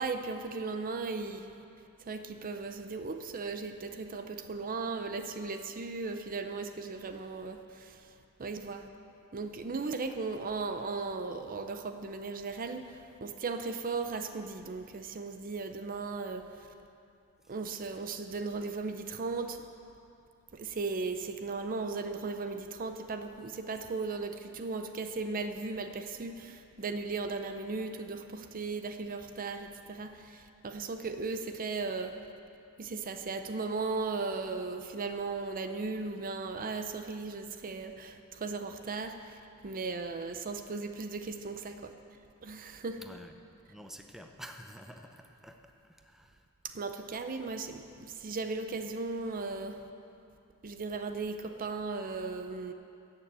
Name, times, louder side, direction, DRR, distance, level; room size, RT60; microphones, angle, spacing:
voice 1, 0.0-1.5 2.1-8.0 8.4-8.9 9.3-16.5 17.5-19.6 20.5-32.2 32.8-39.4 39.6-41.9 42.4-43.0 46.6-49.8 50.6-52.7, right 4 dB, 40° right, 7 dB, 0.6 m, -37 dB
voice 2, 43.0-43.3 43.7-46.4, equal, ahead, 4 dB, 0.7 m, -49 dB
14.0 x 6.7 x 8.8 m, 2.6 s
head